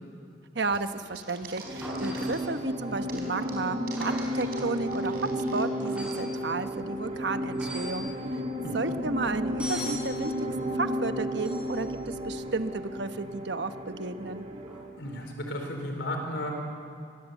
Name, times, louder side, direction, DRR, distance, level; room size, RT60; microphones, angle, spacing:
voice 1, 0.5-8.1 8.7-10.3 10.7-14.5, right 3 dB, 65° right, 9 dB, 1.0 m, -32 dB
sound 1, 0.7-2.6 3.0-6.1, right 4 dB, 50° right, 4.4 m, -44 dB
sound 2, 1.6-15.0, equal, 35° right, 2.2 m, -33 dB
sound 3, 1.8-2.5 4.0-4.4 5.8-6.3 7.5-8.0 9.6-10.1 11.4-11.9 14.6-14.8, equal, 5° right, 7.5 m, -39 dB
voice 2, 15.0-16.5, left 1 dB, 75° left, 3 dB, 4.2 m, -34 dB
24.5 x 19.5 x 8.2 m, 2.5 s
head